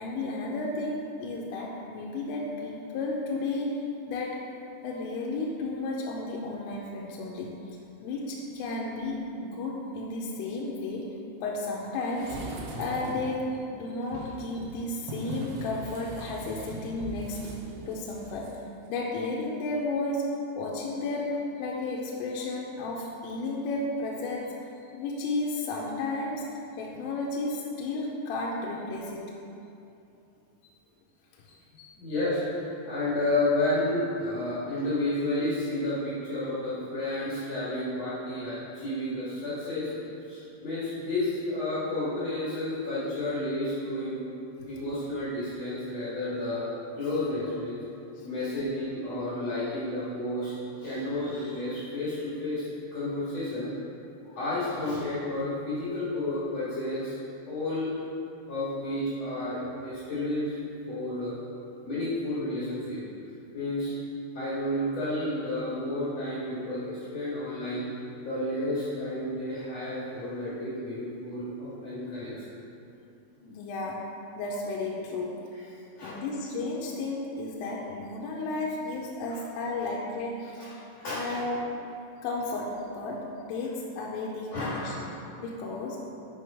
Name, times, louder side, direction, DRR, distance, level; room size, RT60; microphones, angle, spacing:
voice 1, 0.0-4.5 4.8-7.8 8.0-11.2 11.4-17.5 17.9-18.6 18.9-20.3 20.6-24.6 24.9-29.3 31.4-31.9 48.2-48.3 73.4-74.1 74.4-75.4 76.0-80.9 81.1-81.7 82.2-85.1 85.4-86.0, left 2 dB, 85° left, -3 dB, 3.3 m, -33 dB
sound 1, 12.1-13.4 14.0-18.6 18.9-19.0, right 2 dB, 85° right, 3.6 m, -40 dB
voice 2, 31.9-32.4 32.8-39.9 40.3-44.2 44.6-46.6 46.9-47.8 48.2-52.7 52.9-53.7 54.2-57.1 57.5-57.9 58.5-60.6 60.9-61.4 61.8-63.0 63.5-63.9 64.3-67.9 68.2-72.4 76.0-76.2 79.3-79.4 80.6-81.4 84.5-85.1, left 1 dB, 65° left, -10 dB, 1.6 m, -31 dB
9.4 x 5.7 x 4.9 m, 2.7 s
omnidirectional pair, 5.9 m